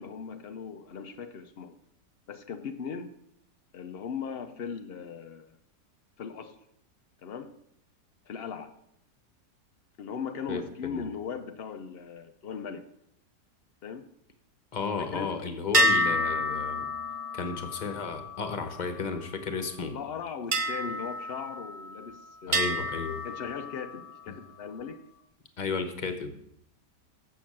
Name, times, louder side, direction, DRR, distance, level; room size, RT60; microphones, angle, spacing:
voice 1, 0.0-1.8 2.3-3.1 3.7-5.6 6.2-6.6 7.2-7.6 8.2-8.7 10.0-12.9 13.8-14.1 15.1-15.4 19.8-22.8 23.2-25.0, left 6 dB, 80° left, 7 dB, 0.5 m, -38 dB
voice 2, 10.5-11.1 14.7-16.9 17.3-19.9 22.5-23.2 24.3-24.4 25.6-26.3, left 4 dB, 35° left, 7 dB, 0.8 m, -33 dB
sound 1, 15.7-19.4 20.5-22.1 22.5-24.2, equal, 35° right, 0.9 m, -30 dB
7.2 x 6.9 x 7.3 m, 0.75 s
omnidirectional pair, 1.8 m